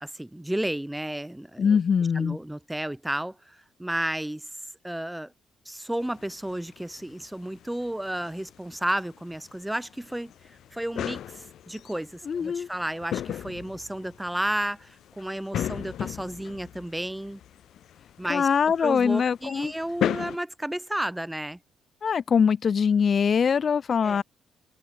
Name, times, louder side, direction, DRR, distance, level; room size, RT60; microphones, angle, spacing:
voice 1, 0.0-1.8 2.1-4.5 4.8-5.3 5.7-10.3 10.7-17.4 18.2-18.5 18.8-21.6 24.0-24.2, right 1 dB, 5° right, 0.5 m, -32 dB
voice 2, 1.6-2.4 12.3-12.7 18.3-19.7 22.0-24.2, left 6 dB, 45° left, 0.4 m, -23 dB
sound 1, 6.0-20.4, left 11 dB, 70° left, 1.3 m, -37 dB
cardioid pair, 90°, 0 cm